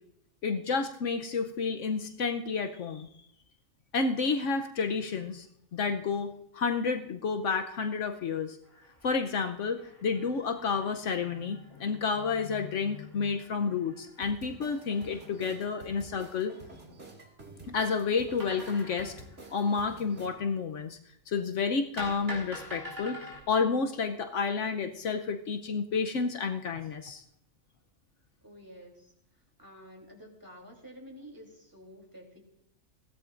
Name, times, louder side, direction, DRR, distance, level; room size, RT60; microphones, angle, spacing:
voice 1, 0.4-3.1 3.9-5.5 5.7-8.6 9.0-16.5 17.7-19.1 19.5-21.0 21.3-27.2, left 5 dB, 70° left, 6 dB, 1.1 m, -30 dB
sound 1, 8.6-16.7 18.4-20.5 22.0-23.4, left 1 dB, 35° right, 5.3 m, -48 dB
sound 2, 14.2-20.3, right 2 dB, 50° right, 2.6 m, -49 dB
voice 2, 28.4-29.1 29.6-32.4, equal, 15° right, 0 dB, 3.4 m, -50 dB
20.5 x 16.0 x 2.5 m, 0.74 s
omnidirectional pair, 1.4 m